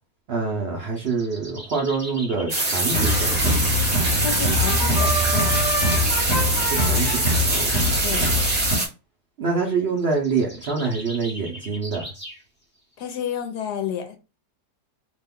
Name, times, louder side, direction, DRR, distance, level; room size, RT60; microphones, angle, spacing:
voice 1, 0.3-3.6 6.6-8.1 9.4-12.0, right 4 dB, 70° right, 0.5 m, -26 dB
sound 1, 0.9-3.3 9.9-12.4, equal, 5° left, 1.1 m, -39 dB
sound 2, 2.5-8.9, right 2 dB, 35° right, 0.7 m, -24 dB
sound 3, 2.9-8.8, left 1 dB, 45° left, 1.2 m, -23 dB
voice 2, 4.2-5.5 8.0-8.3 13.0-14.2, left 8 dB, 75° left, 1.2 m, -30 dB
2.9 x 2.2 x 3.5 m
omnidirectional pair, 1.8 m